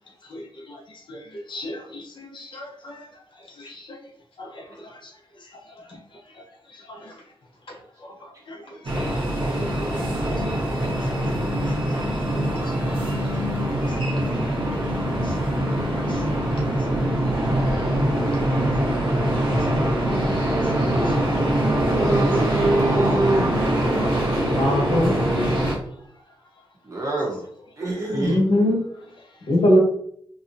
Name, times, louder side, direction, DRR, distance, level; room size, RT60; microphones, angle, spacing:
voice 1, 0.2-0.8 1.1-3.1 3.6-4.0 4.4-5.1 5.7-5.9 6.3-6.4 6.7-7.1 8.0-9.2 9.6-10.0 10.5-10.6 11.1-11.2 11.5-11.8 12.0-12.7 13.4-13.6 14.4-14.6 15.1-15.4 16.1-16.2 16.5-16.6 17.4-17.8 18.9-19.0 19.4-19.8 20.8-21.2, left 1 dB, 55° left, 0.6 m, -41 dB
sound 1, 8.8-25.8, right 1 dB, 65° right, 0.8 m, -23 dB
voice 2, 21.9-23.5 26.9-27.4 27.8-28.4, right 2 dB, 35° right, 0.8 m, -24 dB
voice 3, 24.5-25.2 28.1-28.8 29.5-29.8, left 1 dB, 75° left, 1.1 m, -20 dB
2.8 x 2.1 x 2.5 m
wide cardioid pair, 135°, 9 cm